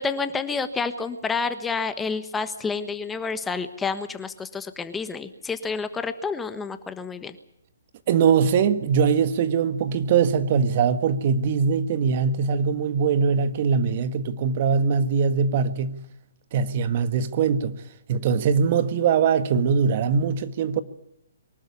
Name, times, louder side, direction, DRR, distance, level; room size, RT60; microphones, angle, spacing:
voice 1, 0.0-7.4, left 4 dB, 10° left, 1.3 m, -29 dB
voice 2, 8.1-16.0 16.5-17.7 18.1-20.8, right 6 dB, 45° right, 1.6 m, -22 dB
23.5 x 12.5 x 9.9 m
hypercardioid pair, 135°, 0 cm